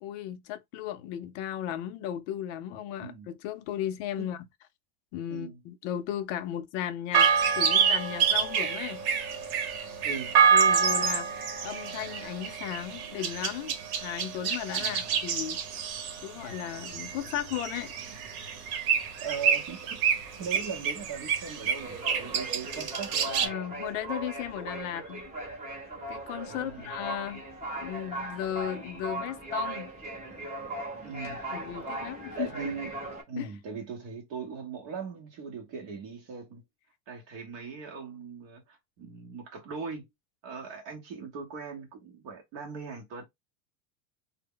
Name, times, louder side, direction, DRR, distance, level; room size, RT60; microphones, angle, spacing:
voice 1, 0.0-4.4 5.1-7.3 7.5-9.0 10.5-11.3 11.6-13.7 14.0-15.6 16.2-17.9 23.4-25.2 26.1-27.4 27.8-29.9 31.5-32.5 33.3-33.5, left 11 dB, 55° left, 0.5 m, -35 dB
voice 2, 3.0-3.3 4.2-4.3 5.3-5.6 10.0-10.4 14.7-15.2 19.2-20.0 20.4-23.5 26.5-26.9 31.0-31.4 32.4-32.9 33.3-36.6 37.1-40.1 40.4-43.2, right 6 dB, 45° right, 0.8 m, -39 dB
sound 1, 7.1-23.5, right 6 dB, 70° right, 1.0 m, -27 dB
sound 2, 17.0-18.1 18.5-18.7 19.0-33.2, right 2 dB, 15° right, 1.0 m, -39 dB
2.0 x 2.0 x 3.6 m
supercardioid pair, 145°, 45 cm